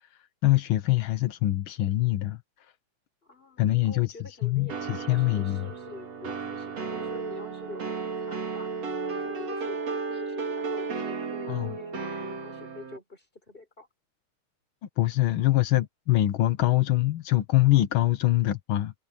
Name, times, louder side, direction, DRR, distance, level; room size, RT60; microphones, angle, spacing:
voice 1, 0.4-2.4 3.6-4.1 4.4-5.7 11.5-11.8 15.0-18.9, left 15 dB, 75° left, 1.1 m, -24 dB
voice 2, 3.2-8.7 9.1-13.9, left 3 dB, 15° left, 4.8 m, -46 dB
sound 1, 4.7-13.0, right 4 dB, 55° right, 4.1 m, -34 dB
omnidirectional pair, 3.5 m